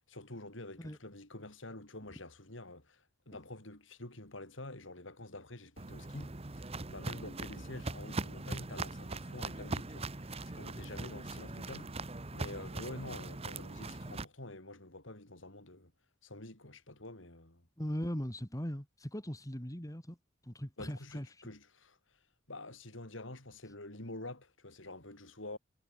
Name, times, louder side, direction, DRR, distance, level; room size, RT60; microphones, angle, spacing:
voice 1, 0.1-11.9 12.3-15.9 16.2-17.7 20.8-22.2 22.5-25.6, left 2 dB, 70° left, 5.5 m, -48 dB
Walk footsteps, 5.8-14.2, right 2 dB, 30° right, 1.2 m, -41 dB
voice 2, 17.8-20.2 20.4-21.3, equal, 15° left, 2.6 m, -39 dB
head